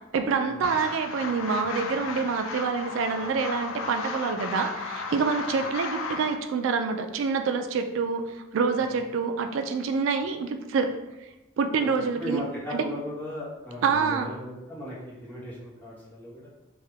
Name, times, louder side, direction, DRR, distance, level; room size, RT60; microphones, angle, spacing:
voice 1, 0.1-10.9 11.2-11.3 11.6-12.4 12.7-12.9 13.8-14.3, right 5 dB, 75° right, 6 dB, 0.3 m, -27 dB
sound 1, 0.6-6.4, left 4 dB, 90° left, 0.4 m, -35 dB
voice 2, 11.8-16.5, equal, 10° left, -9 dB, 1.3 m, -36 dB
3.5 x 2.7 x 3.3 m, 0.99 s
head